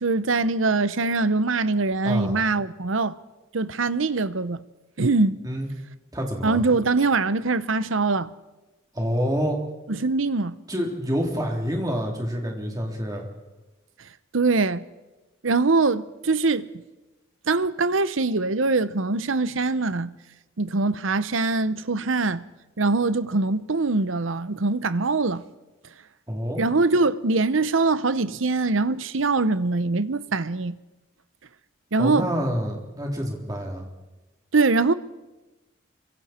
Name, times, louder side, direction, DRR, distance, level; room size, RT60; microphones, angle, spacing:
voice 1, 0.0-3.2 3.5-4.6 5.0-5.4 6.4-8.3 9.9-10.5 14.3-14.8 15.4-16.7 17.5-20.1 20.6-22.4 22.8-25.4 26.6-30.7 31.9-32.3 34.5-34.9, right 3 dB, 80° right, 0.8 m, -23 dB
voice 2, 2.0-2.4 5.4-5.7 6.1-6.6 8.9-9.6 10.7-13.3 26.3-26.6 32.0-33.9, equal, 20° right, 3.3 m, -27 dB
28.0 x 24.5 x 4.4 m
head